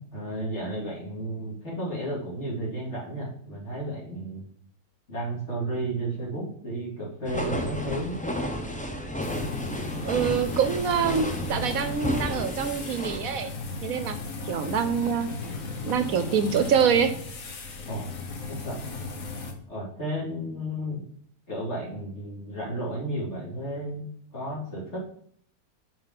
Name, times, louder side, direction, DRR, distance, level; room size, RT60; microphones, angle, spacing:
voice 1, 0.0-4.4 5.1-8.2 17.9-18.1 18.5-18.8 19.7-21.0 21.5-25.0, right 1 dB, 45° left, -4 dB, 2.8 m, -33 dB
sound 1, 7.3-13.2, left 1 dB, 10° left, 0.4 m, -32 dB
sound 2, 9.2-19.5, left 3 dB, 60° left, 1.5 m, -36 dB
voice 2, 10.0-13.5 13.8-14.2 14.4-15.3 15.8-17.1, right 7 dB, 70° right, 10 dB, 1.0 m, -25 dB
5.6 x 5.2 x 5.7 m, 0.63 s
omnidirectional pair, 1.6 m